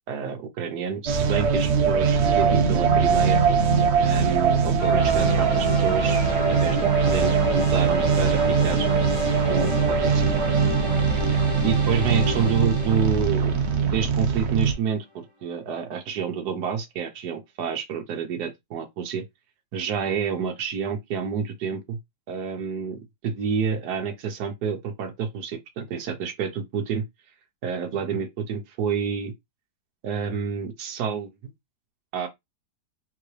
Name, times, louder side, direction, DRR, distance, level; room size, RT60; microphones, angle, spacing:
voice 1, 0.1-3.4 4.0-8.9 9.5-10.2 11.6-13.6 13.8-19.2 19.7-22.0 22.3-27.0 27.6-29.3 30.0-31.5 32.1-32.3, right 6 dB, 70° right, 1.5 m, -28 dB
sound 1, 1.1-14.7, right 6 dB, 50° right, 0.9 m, -21 dB
sound 2, 4.8-14.8, left 2 dB, 10° right, 1.4 m, -32 dB
3.9 x 3.6 x 3.2 m
omnidirectional pair, 1.8 m